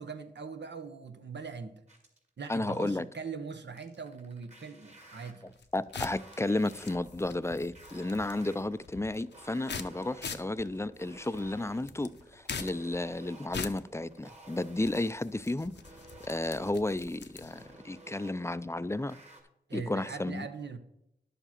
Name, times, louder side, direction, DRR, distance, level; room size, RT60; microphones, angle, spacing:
voice 1, 0.0-1.8 2.4-5.5 19.7-20.8, right 5 dB, 80° right, 1.0 m, -41 dB
sound 1, 1.9-2.3 3.8-19.4, right 2 dB, 40° right, 2.3 m, -54 dB
voice 2, 2.5-3.0 5.7-15.7 16.2-19.2 19.7-20.5, left 2 dB, 15° left, 0.4 m, -33 dB
sound 2, 5.5-17.8, left 5 dB, 85° left, 0.7 m, -44 dB
11.0 x 6.9 x 4.4 m
wide cardioid pair, 60°, 18 cm